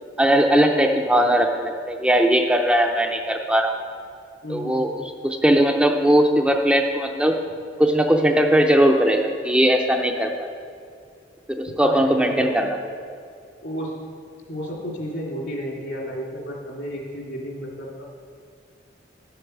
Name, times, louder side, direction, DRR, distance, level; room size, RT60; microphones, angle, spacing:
voice 1, 0.2-3.8 4.5-4.9 5.2-7.4 7.8-10.5 11.5-12.7, right 1 dB, 5° right, 2 dB, 0.5 m, -19 dB
voice 2, 4.4-4.8 11.8-12.6 13.6-13.9 14.5-18.0, equal, 70° left, -3 dB, 2.8 m, -32 dB
10.5 x 7.9 x 6.1 m, 2.3 s
head